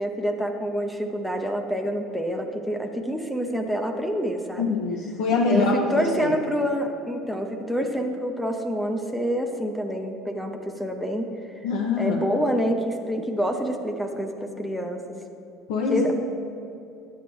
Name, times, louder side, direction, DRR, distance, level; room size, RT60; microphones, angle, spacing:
voice 1, 0.0-4.8 5.5-11.3 12.0-15.2 15.9-16.1, equal, 5° left, 4 dB, 0.6 m, -27 dB
voice 2, 4.6-5.9 6.2-6.3 11.6-12.2 15.7-16.1, left 4 dB, 85° left, -2 dB, 0.9 m, -24 dB
11.5 x 8.4 x 3.1 m, 2.8 s
cardioid pair, 130°, 0 cm